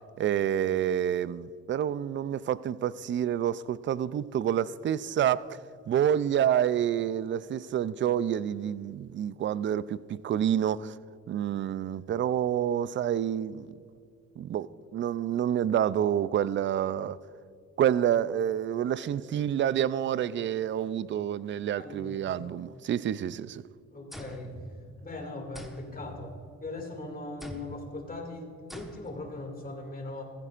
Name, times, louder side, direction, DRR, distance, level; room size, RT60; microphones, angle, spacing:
voice 1, 0.2-5.6 5.9-11.0 11.3-13.7 14.4-17.2 17.8-23.6, right 10 dB, 40° right, 0.4 m, -28 dB
voice 2, 21.8-22.6 23.9-24.5 25.0-26.3 26.6-30.3, left 2 dB, 30° left, 2.3 m, -40 dB
sound 1, 24.1-25.2 25.5-26.8 27.4-27.9 28.7-29.3, equal, ahead, 1.2 m, -45 dB
15.0 x 15.0 x 2.5 m
cardioid pair, 90°, 30 cm